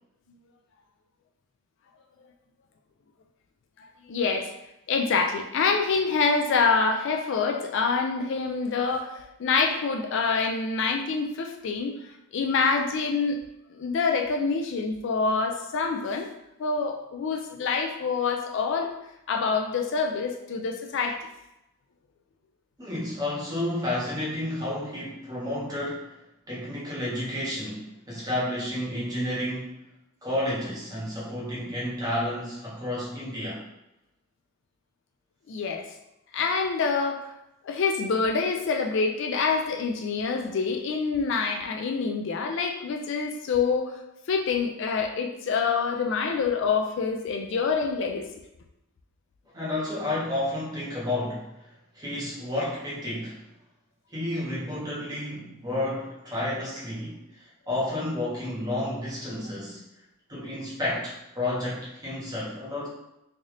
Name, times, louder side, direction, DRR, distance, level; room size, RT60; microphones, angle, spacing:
voice 1, 3.8-4.5 4.9-12.0 12.3-13.4 13.7-16.3 16.6-18.9 19.3-21.3 35.5-35.9 36.3-37.3 37.6-43.9 44.3-48.3, left 4 dB, 55° left, 4 dB, 0.3 m, -26 dB
voice 2, 22.8-26.2 26.5-29.8 30.2-33.6 49.5-51.5 51.9-53.4 54.1-59.8 60.3-62.9, left 1 dB, 15° right, -7 dB, 1.1 m, -31 dB
3.3 x 2.7 x 3.7 m, 0.89 s
head